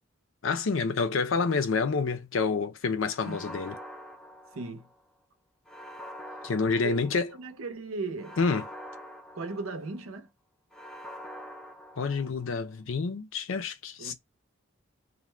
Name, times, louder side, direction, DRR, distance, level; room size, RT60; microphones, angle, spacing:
voice 1, 0.4-3.8 6.4-7.3 8.4-8.6 12.0-14.1, left 4 dB, 70° left, 0.5 m, -28 dB
sound 1, 3.1-5.0 5.7-7.5 8.2-10.1 10.7-12.6, equal, 5° left, 0.4 m, -45 dB
voice 2, 4.5-4.9 6.8-8.4 9.3-10.3 14.0-14.1, right 3 dB, 90° right, 0.7 m, -37 dB
2.5 x 2.1 x 3.2 m
head